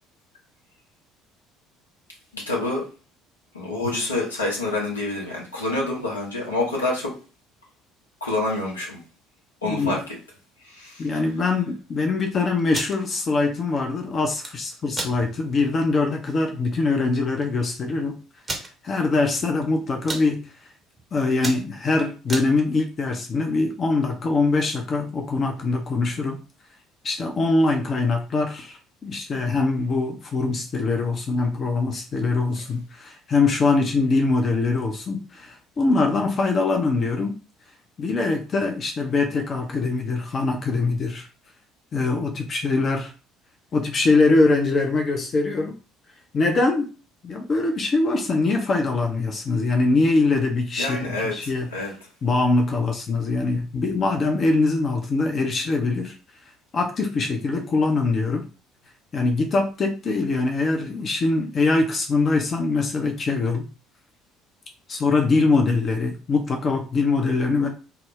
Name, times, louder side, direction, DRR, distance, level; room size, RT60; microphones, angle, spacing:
voice 1, 2.3-2.8 3.5-7.1 8.2-9.0 9.6-10.0 10.6-11.1 50.7-51.9, left 2 dB, 85° left, -3 dB, 0.7 m, -27 dB
voice 2, 9.6-10.0 11.0-18.2 18.8-20.5 21.1-26.4 27.0-37.4 38.0-41.3 41.9-43.1 43.7-45.8 46.3-46.9 47.2-51.9 52.2-56.1 56.7-58.4 59.1-63.7 64.9-67.7, left 3 dB, 40° left, 3 dB, 0.5 m, -23 dB
sound 1, 12.6-13.0 14.2-14.5 14.9-15.2 15.7-15.8 16.1-16.3 17.1-17.2 17.4-17.5 18.4-18.7 19.3-19.6 19.9-20.3 20.8-21.0 21.3-22.5, right 2 dB, 25° right, 0.6 m, -32 dB
2.2 x 2.0 x 3.4 m, 0.34 s
figure-of-eight pair, 55°, 0 cm